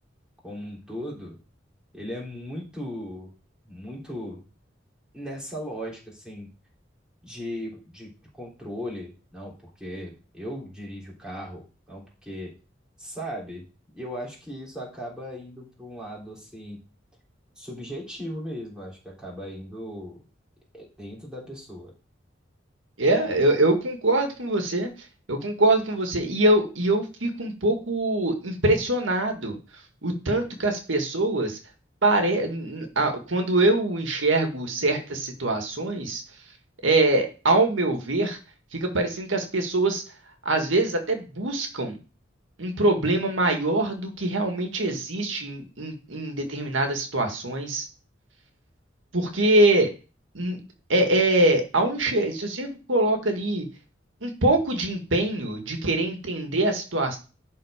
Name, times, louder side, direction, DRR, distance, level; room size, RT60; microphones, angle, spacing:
voice 1, 0.4-1.4 1.9-3.3 3.7-4.4 5.1-6.5 7.2-8.1 8.4-12.5 13.0-13.7 13.9-16.8 17.6-20.2 20.7-21.9, equal, 5° right, -4 dB, 3.5 m, -37 dB
voice 2, 23.0-24.9 25.3-29.6 30.0-31.6 32.0-36.2 36.8-38.4 38.7-40.0 40.5-42.0 42.6-47.8 49.1-49.9 50.3-50.6 50.9-53.7 54.2-57.2, right 2 dB, 90° right, 4 dB, 1.8 m, -23 dB
11.0 x 4.4 x 5.0 m, 0.33 s
head